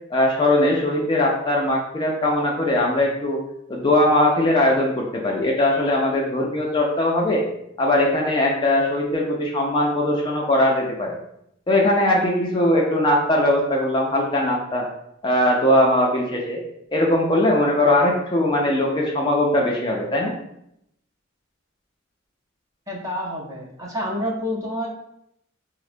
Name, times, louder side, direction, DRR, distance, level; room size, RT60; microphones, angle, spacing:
voice 1, 0.1-3.4 3.7-7.4 7.8-11.2 11.7-14.9 15.2-16.6 16.9-20.3, left 1 dB, 25° left, -2 dB, 0.4 m, -20 dB
voice 2, 22.9-24.9, left 1 dB, 15° right, -3 dB, 0.7 m, -28 dB
4.4 x 2.0 x 2.5 m, 0.78 s
head